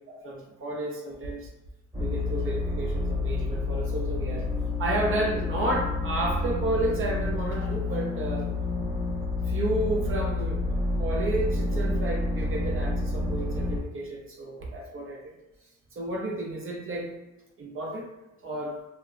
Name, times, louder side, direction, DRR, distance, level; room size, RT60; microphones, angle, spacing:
voice 1, 0.1-1.5 2.0-4.5 4.8-8.5 9.5-10.6 11.0-15.4 15.9-17.1 17.6-18.1 18.4-18.8, right 1 dB, 45° right, -1 dB, 0.6 m, -31 dB
sound 1, 1.9-13.8, left 2 dB, 10° right, 1.1 m, -29 dB
2.2 x 2.0 x 3.5 m, 1.0 s
cardioid pair, 90°, 30 cm